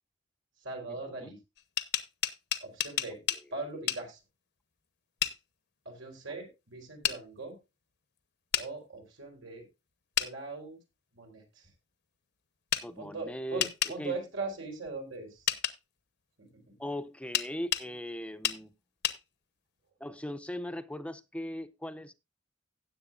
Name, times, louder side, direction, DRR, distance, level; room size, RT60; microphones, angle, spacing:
voice 1, 0.6-1.4 2.6-3.2 3.5-4.2 5.8-7.6 8.6-9.6 10.2-10.8 11.1-11.7 13.0-15.5, right 3 dB, 90° right, 4.3 m, -40 dB
sound 1, 1.6-3.4 3.9-4.0 5.2-5.4 7.0-7.2 8.5-8.7 10.2-10.3 12.7-12.9 13.6-14.0 15.5-15.8 17.3-17.9 18.4-18.6 19.0-19.2, left 10 dB, 60° left, 0.9 m, -30 dB
voice 2, 12.8-13.7 14.0-14.2 16.8-18.7 20.0-22.1, left 1 dB, 5° left, 0.6 m, -39 dB
17.0 x 7.7 x 2.5 m
head